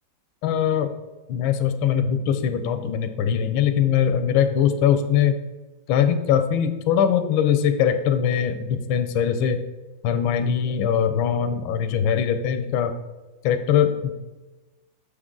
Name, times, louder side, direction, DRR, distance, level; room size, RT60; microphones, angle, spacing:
voice 1, 0.4-0.9 1.3-5.3 5.9-9.6 10.0-12.9 13.4-14.1, left 8 dB, 85° left, 9 dB, 1.4 m, -21 dB
6.5 x 5.0 x 3.7 m, 1.2 s
omnidirectional pair, 2.1 m